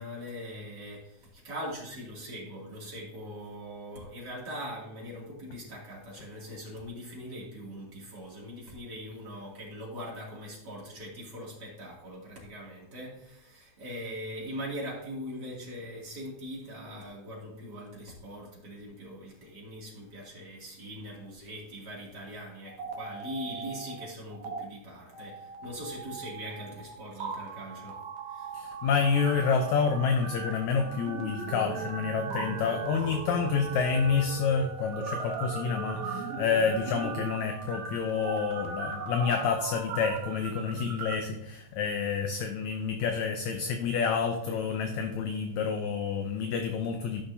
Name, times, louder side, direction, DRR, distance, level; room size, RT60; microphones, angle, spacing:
voice 1, 0.0-28.5, equal, 35° right, -4 dB, 2.9 m, -41 dB
sound 1, 22.6-24.0 24.3-24.6 25.1-41.1, right 5 dB, 60° right, 1.8 m, -38 dB
voice 2, 28.5-47.2, left 6 dB, 75° left, 5 dB, 1.9 m, -28 dB
14.0 x 6.2 x 2.8 m, 0.83 s
omnidirectional pair, 3.7 m